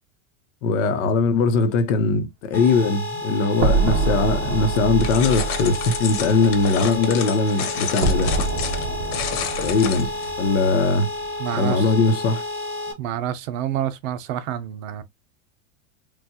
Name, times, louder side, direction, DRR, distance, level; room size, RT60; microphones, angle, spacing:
voice 1, 0.6-8.3 9.6-10.1 10.4-11.1 11.5-12.4, left 4 dB, 55° left, 1.0 m, -20 dB
sound 1, 2.5-12.9, left 2 dB, 5° left, 0.5 m, -31 dB
sound 2, 3.6-11.6, right 4 dB, 40° right, 1.1 m, -27 dB
sound 3, 5.0-10.3, left 8 dB, 80° left, 1.4 m, -30 dB
voice 2, 11.4-11.9 13.0-15.0, right 10 dB, 60° right, 0.7 m, -28 dB
4.6 x 2.4 x 2.8 m
supercardioid pair, 175°, 45 cm